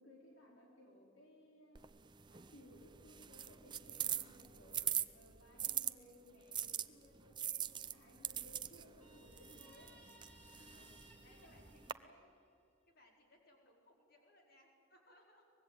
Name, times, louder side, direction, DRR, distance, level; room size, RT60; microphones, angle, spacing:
voice 1, 0.0-1.9 2.3-9.9 10.5-12.4, left 1 dB, 70° left, -1 dB, 3.5 m, -62 dB
sound 1, 1.8-5.9 6.5-11.9, right 10 dB, 20° right, 0.5 m, -42 dB
Guitar, 9.0-12.6, equal, 5° left, 2.8 m, -64 dB
voice 2, 9.5-9.8 10.7-11.9 12.9-15.5, left 1 dB, 50° left, 1 dB, 4.7 m, -68 dB
24.0 x 21.0 x 9.1 m, 2.6 s
head